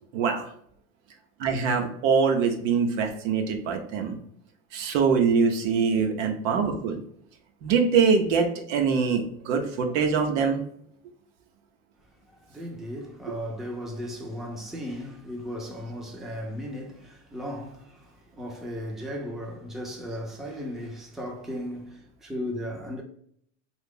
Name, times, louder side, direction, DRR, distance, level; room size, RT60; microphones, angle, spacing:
voice 1, 0.1-0.5 1.4-4.2 4.7-7.0 7.6-10.6, right 5 dB, 70° right, 0.9 m, -24 dB
voice 2, 12.3-23.0, equal, ahead, 0.6 m, -36 dB
2.8 x 2.4 x 3.7 m
supercardioid pair, 110°, 38 cm